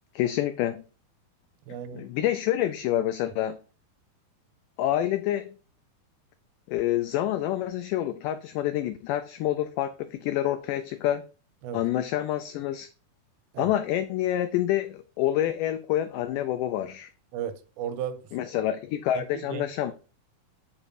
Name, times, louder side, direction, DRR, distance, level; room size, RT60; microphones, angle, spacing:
voice 1, 0.1-0.8 1.9-3.6 4.8-5.5 6.7-11.2 11.7-12.9 13.6-17.1 18.3-19.9, left 12 dB, 90° left, 1.9 m, -27 dB
voice 2, 1.7-2.1 11.6-11.8 13.5-13.7 17.3-18.3 19.1-19.6, right 9 dB, 90° right, 2.6 m, -35 dB
7.2 x 7.0 x 2.6 m
omnidirectional pair, 4.3 m